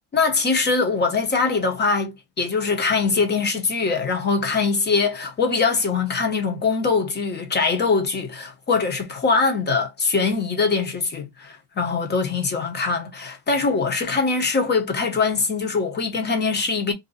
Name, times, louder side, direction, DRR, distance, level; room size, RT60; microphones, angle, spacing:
voice 1, 0.1-16.9, left 4 dB, 30° left, 1.1 m, -22 dB
2.6 x 2.5 x 4.0 m
cardioid pair, 120°, 37 cm